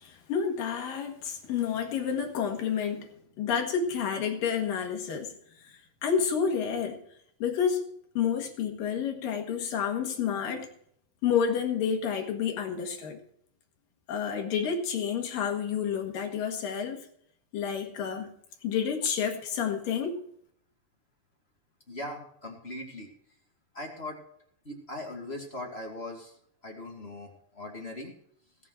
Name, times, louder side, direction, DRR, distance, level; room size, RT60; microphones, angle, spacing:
voice 1, 0.0-3.1 3.4-5.3 6.0-7.0 7.4-7.8 8.2-10.7 11.2-13.2 14.1-17.1 17.5-18.3 18.6-20.2, left 7 dB, 75° left, 3.4 m, -29 dB
voice 2, 21.9-23.1 23.7-24.2 24.6-26.3 26.6-28.1, left 1 dB, 20° left, 2.1 m, -40 dB
18.0 x 7.3 x 6.2 m
omnidirectional pair, 4.0 m